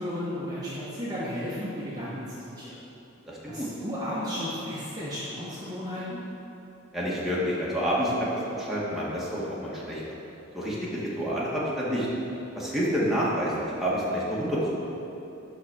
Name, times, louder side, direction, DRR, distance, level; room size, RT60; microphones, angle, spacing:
voice 1, 0.0-2.8 3.4-6.2, equal, 20° right, -9 dB, 1.3 m, -34 dB
voice 2, 3.3-3.7 6.9-10.0 10.5-12.1 12.6-14.6, equal, ahead, -8 dB, 1.8 m, -28 dB
12.0 x 4.2 x 6.4 m, 2.9 s
head